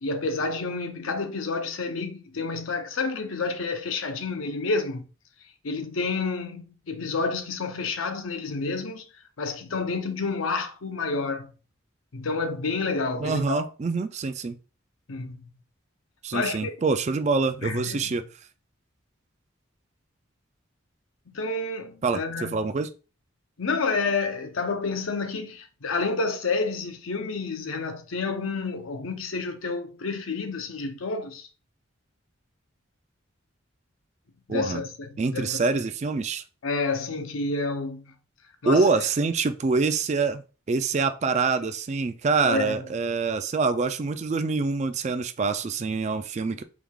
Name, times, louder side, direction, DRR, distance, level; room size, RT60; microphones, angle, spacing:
voice 1, 0.0-5.0 5.6-9.0 9.4-11.5 12.1-13.7 15.1-15.4 16.3-16.7 17.6-18.2 21.3-22.7 23.6-31.5 34.5-35.6 36.6-38.1 38.6-38.9 42.5-42.9, left 3 dB, 85° left, 0.7 m, -29 dB
voice 2, 13.2-14.5 16.2-18.2 22.0-22.2 22.5-22.9 34.5-34.8 35.2-36.4 38.7-40.4 40.7-46.6, right 4 dB, 35° right, 0.3 m, -25 dB
4.7 x 3.6 x 2.3 m
head